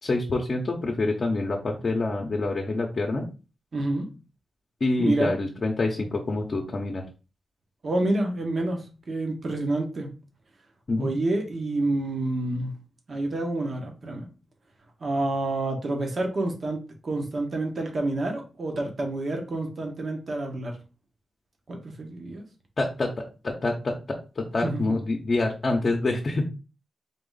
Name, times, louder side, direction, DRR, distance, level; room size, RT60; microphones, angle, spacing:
voice 1, 0.0-3.3 4.8-7.0 10.9-11.1 22.8-23.1 23.4-23.9 24.4-26.5, left 2 dB, 45° left, 0 dB, 0.7 m, -26 dB
voice 2, 3.7-4.1 5.0-5.3 7.8-10.1 11.0-12.7 13.1-14.3 15.0-20.8 21.7-22.4 24.6-24.8, right 2 dB, 50° right, 3 dB, 1.2 m, -28 dB
3.9 x 2.5 x 3.9 m, 0.33 s
cardioid pair, 90°, 0 cm